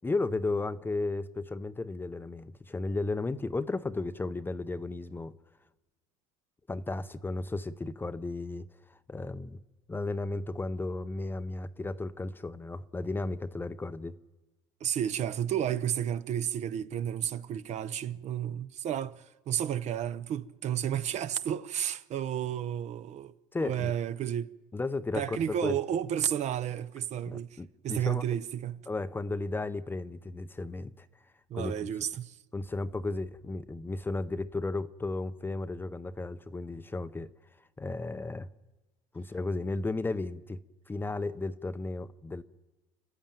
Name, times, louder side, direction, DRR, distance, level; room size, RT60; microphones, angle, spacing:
voice 1, 0.0-5.3 6.7-9.6 9.9-14.2 23.5-23.9 24.7-25.8 27.3-28.2 28.9-31.1 31.5-31.7 32.5-37.3 37.8-38.5 39.1-40.6 40.9-42.4, left 3 dB, 15° left, 0.7 m, -34 dB
voice 2, 14.8-23.3 23.6-24.5 25.1-28.9 31.5-32.4, right 10 dB, 45° right, 0.8 m, -32 dB
30.0 x 12.0 x 9.1 m
supercardioid pair, 115°, 16 cm